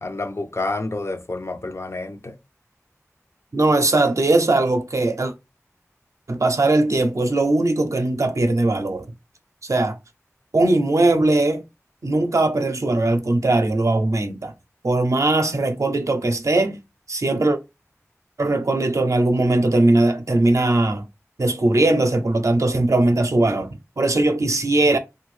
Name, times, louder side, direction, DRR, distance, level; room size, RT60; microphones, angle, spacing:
voice 1, 0.0-2.3, left 2 dB, 55° left, 0.4 m, -29 dB
voice 2, 3.5-5.3 6.3-9.1 9.6-10.0 10.5-11.6 12.0-14.5 14.8-16.8 17.1-17.6 18.4-21.1 21.4-25.0, right 2 dB, 70° right, 0.5 m, -19 dB
2.5 x 2.2 x 3.1 m
wide cardioid pair, 40°, 6 cm